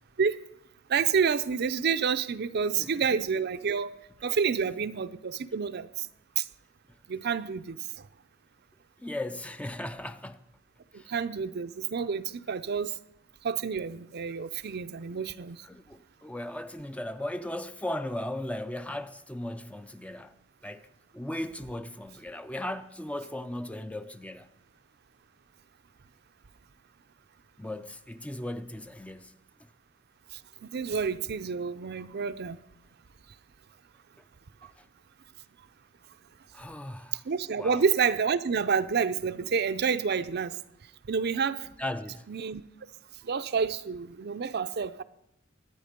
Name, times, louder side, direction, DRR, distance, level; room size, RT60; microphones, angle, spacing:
voice 1, 0.9-3.9 4.2-6.1 6.4-6.5 7.1-8.1 10.9-12.9 13.4-15.7 30.3-32.6 34.6-34.7 37.1-40.6 41.1-41.7 42.3-42.6 43.2-45.0, right 6 dB, 55° right, 0.5 m, -29 dB
voice 2, 2.8-3.2 9.0-10.5 10.9-11.1 15.6-20.3 20.6-20.9 21.1-24.5 27.6-29.4 34.6-34.8 36.5-37.3 37.6-37.8 41.8-42.3, left 1 dB, 5° left, 0.4 m, -37 dB
23.5 x 9.5 x 5.2 m
head